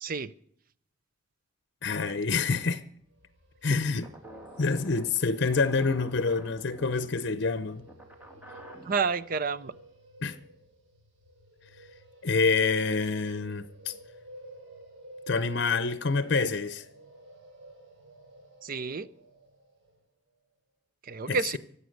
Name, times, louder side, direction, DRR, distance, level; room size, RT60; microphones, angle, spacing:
voice 1, 0.0-0.3 8.8-9.7 18.6-19.1 21.1-21.6, right 4 dB, 50° right, 0.6 m, -29 dB
voice 2, 1.8-2.8 3.6-4.1 4.6-7.8 10.2-10.4 12.2-13.9 15.3-16.9 21.3-21.6, left 4 dB, 60° left, 0.7 m, -27 dB
sound 1, 3.0-20.0, right 1 dB, 90° right, 4.0 m, -52 dB
sound 2, 4.0-9.2, right 1 dB, 10° right, 2.4 m, -49 dB
23.5 x 8.2 x 6.5 m
head